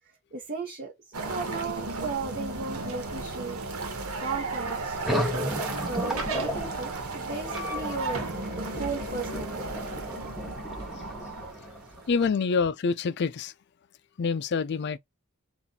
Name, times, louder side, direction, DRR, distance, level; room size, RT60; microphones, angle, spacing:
voice 1, 0.3-3.6 4.2-8.2 8.7-9.9 11.2-11.3, right 4 dB, 45° right, 1.1 m, -36 dB
sound 1, 1.1-12.3, right 3 dB, 85° right, 1.2 m, -35 dB
sound 2, 1.4-10.9, right 3 dB, 65° right, 1.1 m, -41 dB
sound 3, 5.0-12.3, equal, ahead, 1.0 m, -34 dB
voice 2, 12.1-13.5 14.2-15.0, left 5 dB, 50° left, 0.4 m, -26 dB
4.0 x 2.5 x 4.1 m
head